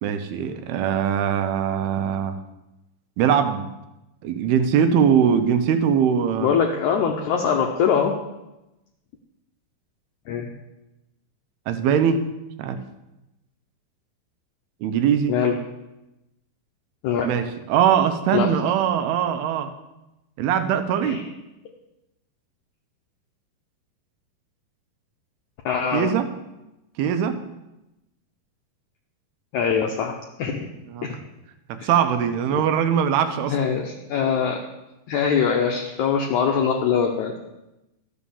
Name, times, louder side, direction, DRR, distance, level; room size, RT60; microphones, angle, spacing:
voice 1, 0.0-2.4 3.2-3.7 4.2-6.6 11.7-12.2 12.6-12.8 14.8-15.3 17.2-19.7 20.4-21.2 25.9-26.3 27.0-27.4 30.9-31.2 31.7-33.5, right 8 dB, 85° right, 8 dB, 2.8 m, -21 dB
voice 2, 6.4-8.2 10.3-10.5 15.3-15.5 17.0-17.3 18.3-18.5 21.0-21.2 25.6-26.1 29.5-30.1 30.4-30.7 31.0-31.1 31.8-31.9 32.5-32.6 33.5-34.6 35.1-37.3, left 7 dB, 80° left, 1 dB, 1.7 m, -22 dB
13.0 x 6.2 x 7.0 m, 0.96 s
omnidirectional pair, 4.5 m